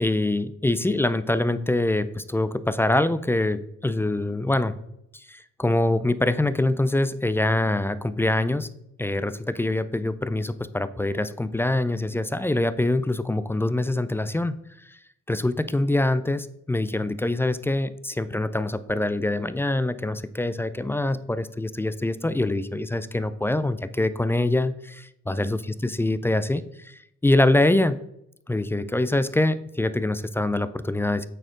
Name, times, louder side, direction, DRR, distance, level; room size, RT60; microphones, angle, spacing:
voice 1, 0.0-4.8 5.3-8.7 9.0-14.6 14.9-15.0 15.3-28.0 28.5-31.3, left 2 dB, 10° left, 13 dB, 0.3 m, -24 dB
9.0 x 4.2 x 3.7 m, 0.79 s
cardioid pair, 90°, 30 cm